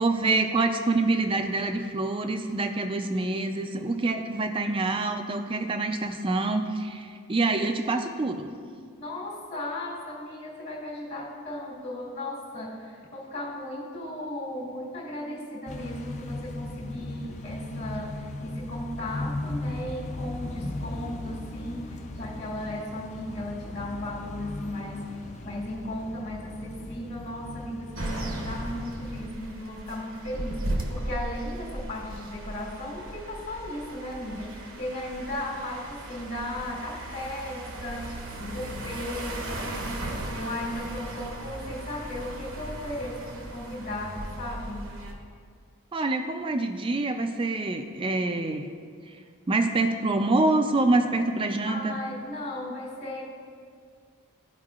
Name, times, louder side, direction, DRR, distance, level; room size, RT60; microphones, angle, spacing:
voice 1, 0.0-8.5 20.6-20.7 45.9-48.7 49.5-52.0, right 2 dB, 25° right, 6 dB, 0.4 m, -26 dB
voice 2, 9.0-45.0 51.7-53.2, left 1 dB, 50° left, -5 dB, 1.5 m, -36 dB
sound 1, 15.7-29.3, left 2 dB, 30° left, 0.5 m, -38 dB
sound 2, 27.9-45.1, right 1 dB, 60° right, 0.9 m, -37 dB
13.0 x 4.7 x 2.4 m, 2.1 s
head